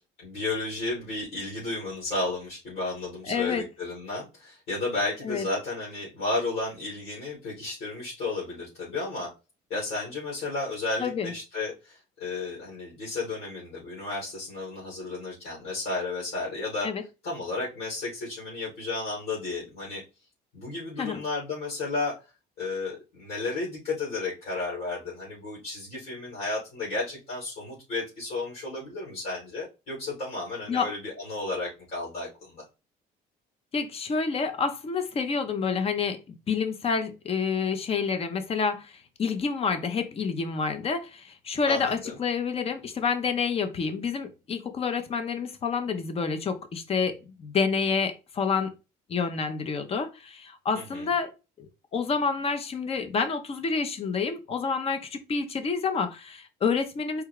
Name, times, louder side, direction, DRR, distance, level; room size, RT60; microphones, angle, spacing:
voice 1, 0.2-9.3 9.7-16.9 17.2-20.0 20.5-22.2 22.6-32.6 41.7-42.2 50.7-51.0, left 3 dB, 65° left, 2.8 m, -33 dB
voice 2, 3.3-3.7 5.2-5.4 11.0-11.3 16.8-17.0 21.0-21.2 30.7-30.9 33.7-36.2 36.5-48.7 49.1-51.3 51.6-57.2, left 5 dB, 35° left, 0.8 m, -28 dB
4.7 x 2.2 x 4.8 m
cardioid pair, 110°, 17 cm